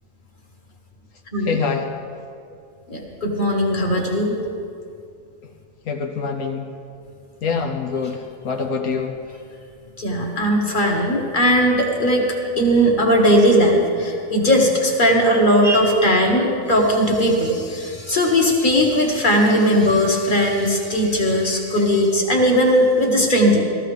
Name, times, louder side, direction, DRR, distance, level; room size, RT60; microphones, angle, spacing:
voice 1, 1.4-1.9 5.9-6.7 7.4-9.2, left 5 dB, 80° left, 3 dB, 1.3 m, -25 dB
voice 2, 2.9-4.4 10.0-12.3 12.6-23.6, equal, 35° left, 0 dB, 1.7 m, -18 dB
16.0 x 14.0 x 3.4 m, 2.4 s
omnidirectional pair, 1.5 m